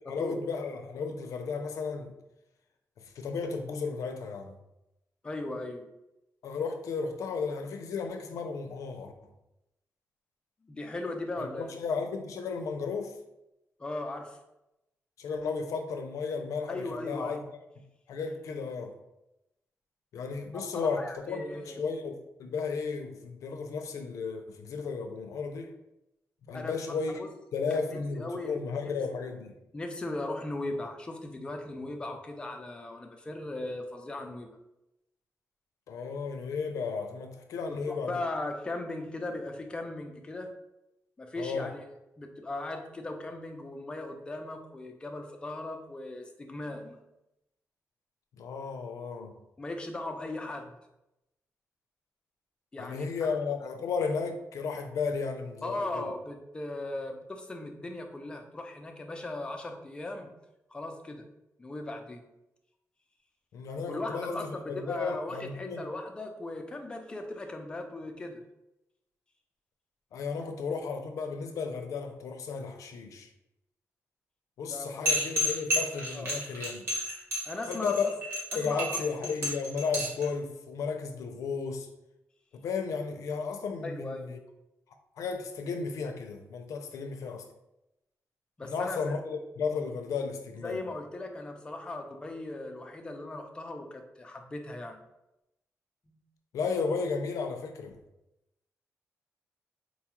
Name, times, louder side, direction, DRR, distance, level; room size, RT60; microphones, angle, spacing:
voice 1, 0.1-2.1 3.2-4.5 6.4-9.1 11.4-13.1 15.2-17.4 18.1-18.9 20.1-25.7 26.5-27.2 27.5-29.5 35.9-38.2 41.4-41.7 48.4-49.3 52.8-56.1 63.5-65.8 70.1-73.3 74.6-76.8 77.7-78.1 78.5-81.9 82.6-84.4 85.2-87.4 88.6-90.8 96.5-98.0, left 5 dB, 90° left, 0.4 m, -34 dB
voice 2, 5.2-5.9 10.6-11.7 13.8-14.4 16.7-17.4 20.5-21.8 26.5-26.7 27.2-27.3 27.7-28.9 29.7-34.5 37.7-40.5 41.2-41.8 42.2-47.0 49.6-50.7 52.7-53.4 55.6-60.3 60.7-61.3 61.6-62.2 63.9-68.4 74.6-75.1 76.1-76.3 77.5-78.1 78.6-79.3 83.8-84.3 88.6-89.1 90.6-95.0 96.1-96.2, left 2 dB, 20° left, 0.4 m, -38 dB
sound 1, 75.1-80.2, left 1 dB, 50° right, 1.0 m, -30 dB
3.9 x 2.3 x 2.9 m
wide cardioid pair, 165°, 5 cm